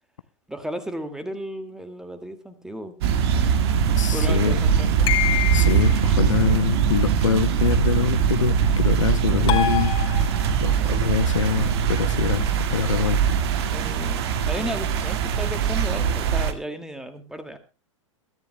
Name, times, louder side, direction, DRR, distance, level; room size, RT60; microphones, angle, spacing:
voice 1, 0.5-3.0 3.3-5.2 6.4-6.6 9.3-9.5 13.7-17.6, right 1 dB, 5° right, 2.2 m, -34 dB
sound 1, 3.0-16.5, right 7 dB, 50° right, 1.9 m, -22 dB
voice 2, 4.0-4.6 5.5-10.4 10.6-13.2, left 8 dB, 70° left, 0.8 m, -25 dB
sound 2, 5.1-6.0 9.5-10.7, left 10 dB, 30° left, 2.5 m, -26 dB
22.5 x 13.5 x 2.2 m
figure-of-eight pair, 100°, 17 cm